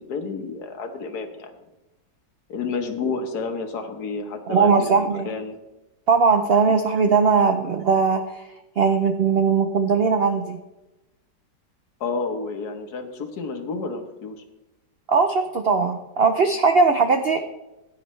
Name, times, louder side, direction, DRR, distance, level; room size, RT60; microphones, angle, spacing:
voice 1, 0.0-1.5 2.5-5.6 12.0-14.3, left 4 dB, 65° left, 6 dB, 1.6 m, -30 dB
voice 2, 4.5-5.3 6.1-8.4 8.8-10.6 15.1-17.4, right 5 dB, 80° right, 7 dB, 0.5 m, -19 dB
15.5 x 9.2 x 3.2 m, 1.0 s
omnidirectional pair, 1.9 m